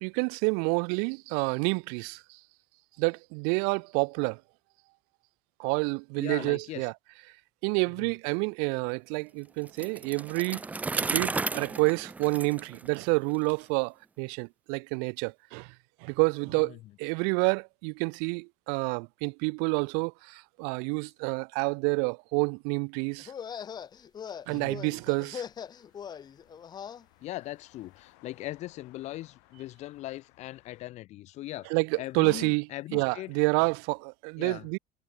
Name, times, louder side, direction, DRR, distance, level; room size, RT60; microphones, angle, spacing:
voice 1, 0.0-2.4 3.0-4.4 5.6-6.9 7.6-10.6 10.9-15.7 16.0-23.3 24.5-25.4 31.7-32.7 32.9-34.8, right 40 dB or more, 80° right, 0.8 m, -29 dB
voice 2, 6.2-6.9 8.0-8.1 16.5-16.8 24.5-24.8 27.2-33.3 34.4-34.7, left 16 dB, 45° left, 0.6 m, -40 dB
Bicycle, 9.7-13.5, right 3 dB, 10° right, 0.5 m, -34 dB
sound 1, 23.2-27.0, left 8 dB, 25° left, 1.2 m, -41 dB
sound 2, 24.6-30.8, left 40 dB or more, 80° left, 4.1 m, -63 dB
cardioid pair, 165°, 17 cm